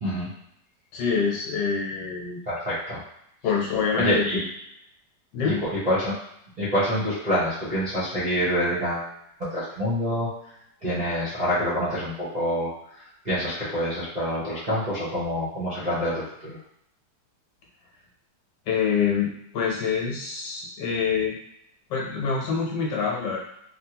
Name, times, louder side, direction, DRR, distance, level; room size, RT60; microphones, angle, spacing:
voice 1, 0.0-0.3 2.5-3.0 4.0-4.5 5.4-6.1 6.6-9.1 9.5-10.3 10.8-16.6, equal, 40° right, -10 dB, 0.7 m, -26 dB
voice 2, 0.9-2.4 3.4-4.4 5.3-5.6 18.7-21.4 21.9-23.4, left 6 dB, 80° left, -2 dB, 1.5 m, -26 dB
3.4 x 2.3 x 2.9 m, 0.76 s
omnidirectional pair, 1.9 m